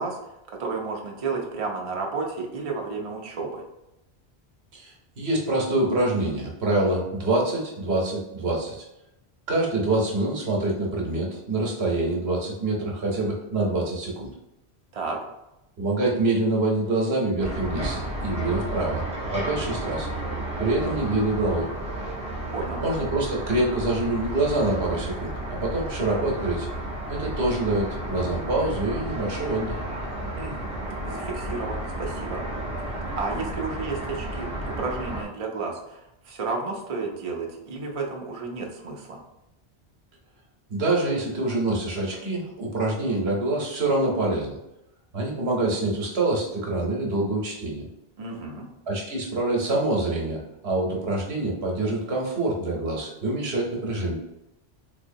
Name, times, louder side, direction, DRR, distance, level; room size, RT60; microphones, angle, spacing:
voice 1, 0.0-3.6 14.9-15.2 22.5-22.8 30.4-30.7 31.0-32.4 32.8-34.5 34.8-39.2 48.2-48.7, right 4 dB, 40° right, 0 dB, 0.5 m, -32 dB
voice 2, 4.7-8.8 9.5-14.3 15.8-19.0 19.3-20.1 20.6-21.7 22.8-26.7 27.1-29.8 40.7-44.6 45.1-47.9 48.9-54.2, right 2 dB, 70° right, -1 dB, 1.1 m, -26 dB
sound 1, 17.4-35.2, right 1 dB, 5° right, 0.8 m, -32 dB
3.7 x 2.9 x 2.6 m, 0.89 s
omnidirectional pair, 1.1 m